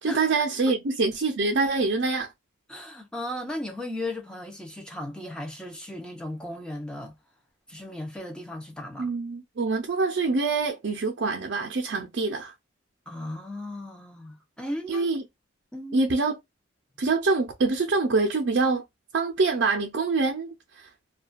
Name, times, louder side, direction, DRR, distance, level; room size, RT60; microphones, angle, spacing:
voice 1, 0.0-2.3 9.0-12.5 14.9-15.2 15.9-16.4 17.0-18.8 19.1-20.9, right 3 dB, 60° right, 0.5 m, -25 dB
voice 2, 2.7-7.2 7.7-9.1 13.1-15.1 15.7-16.0, left 1 dB, 5° left, 0.5 m, -36 dB
2.3 x 2.2 x 2.4 m
head